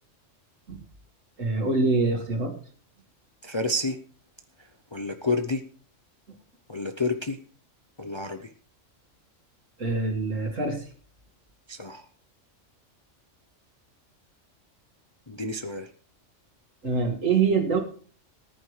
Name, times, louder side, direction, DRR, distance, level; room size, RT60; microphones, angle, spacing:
voice 1, 1.4-2.5 9.8-10.9 16.8-17.8, right 4 dB, 80° right, 2 dB, 2.4 m, -25 dB
voice 2, 3.4-4.0 4.9-5.6 6.7-7.4 8.0-8.5 11.7-12.1 15.3-15.9, left 2 dB, 30° left, 7 dB, 0.5 m, -29 dB
19.0 x 9.8 x 3.2 m, 0.43 s
omnidirectional pair, 1.3 m